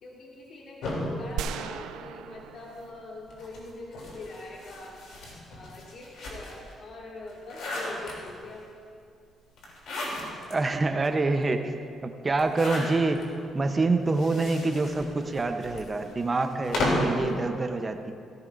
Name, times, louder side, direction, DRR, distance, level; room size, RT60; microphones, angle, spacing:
voice 1, 0.0-5.0 5.5-8.8, left 2 dB, 60° left, -3 dB, 2.3 m, -43 dB
sound 1, 0.8-2.4 3.3-6.7 7.2-8.6 9.6-10.5 11.0-11.1 11.3-11.4 12.3-13.3 14.0-17.2, left 1 dB, 80° left, 3.2 m, -34 dB
sound 2, 1.4-3.7, right 9 dB, 90° right, 0.3 m, -38 dB
voice 2, 10.5-11.7 12.0-13.2 13.5-18.1, right 3 dB, 30° right, 6 dB, 0.9 m, -26 dB
16.5 x 15.0 x 2.7 m, 2.4 s
cardioid pair, 90°, 0 cm